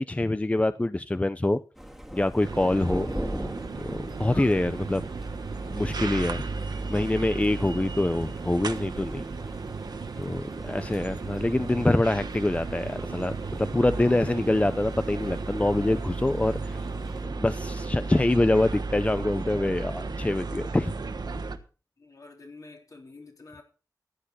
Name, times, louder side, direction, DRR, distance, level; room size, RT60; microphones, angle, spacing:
voice 1, 0.0-1.6 2.1-3.1 3.8-5.0 5.7-6.4 6.9-9.2 10.2-16.9 17.2-20.9, left 2 dB, 20° left, 0.5 m, -25 dB
Thunder, 1.7-17.2, equal, ahead, 2.0 m, -42 dB
sound 1, 2.4-21.6, right 3 dB, 80° right, 1.2 m, -34 dB
voice 2, 2.8-3.3 4.3-4.6 10.8-11.1 20.6-21.2 22.0-23.6, left 3 dB, 55° left, 3.7 m, -48 dB
15.0 x 10.5 x 4.2 m
wide cardioid pair, 90°, 7 cm